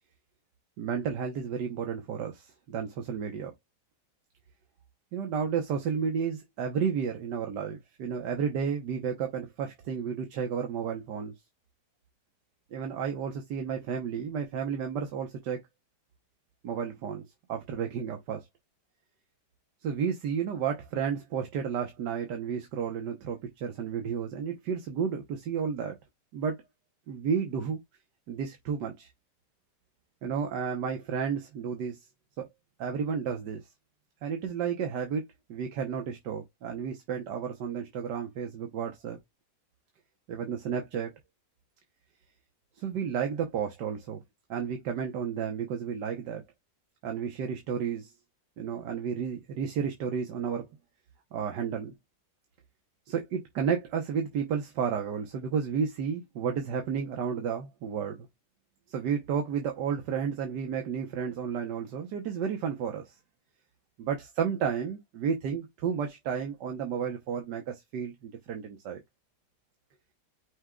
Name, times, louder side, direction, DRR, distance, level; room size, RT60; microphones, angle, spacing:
voice 1, 0.8-3.5 5.1-11.4 12.7-15.6 16.6-18.4 19.8-26.0 26.3-26.6 27.1-27.8 28.3-29.1 30.2-32.1 32.4-32.5 32.8-33.7 34.2-35.2 35.5-39.2 40.3-41.1 42.8-44.2 44.5-46.4 47.0-48.1 48.6-50.7 51.3-51.9 53.1-58.3 58.9-63.2 64.0-69.0, right 7 dB, 85° right, 1.6 m, -32 dB
6.0 x 2.2 x 3.7 m
omnidirectional pair, 1.8 m